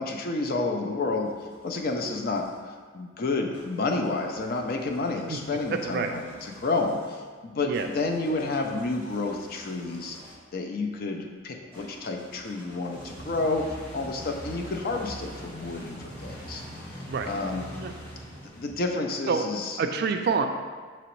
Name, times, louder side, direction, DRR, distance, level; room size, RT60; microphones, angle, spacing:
voice 1, 0.0-1.3 1.6-2.5 2.9-10.2 10.5-16.6 17.3-17.6 18.6-19.8, left 3 dB, 45° left, 3 dB, 0.4 m, -30 dB
sound 1, 0.9-2.6 3.5-10.5 11.7-19.0, equal, 10° left, 1.3 m, -44 dB
voice 2, 5.7-6.1 7.6-7.9 17.1-17.3 17.8-17.9 19.3-19.4 19.8-20.4, right 5 dB, 50° right, 5 dB, 0.3 m, -27 dB
5.9 x 2.9 x 3.1 m, 1.6 s
head